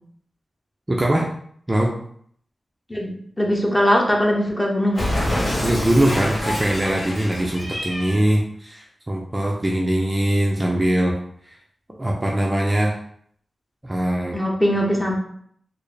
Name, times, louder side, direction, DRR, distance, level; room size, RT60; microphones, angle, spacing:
voice 1, 0.9-1.3 1.7-1.9 5.6-11.2 11.4-11.6 11.9-13.0 13.8-14.4, right 1 dB, 20° right, -1 dB, 0.5 m, -21 dB
voice 2, 2.9-5.1 14.3-15.2, equal, 10° left, -1 dB, 0.9 m, -21 dB
Cat, 4.9-8.2, left 1 dB, 50° left, 1.4 m, -26 dB
4.4 x 2.0 x 3.3 m, 0.63 s
wide cardioid pair, 70°, 0 cm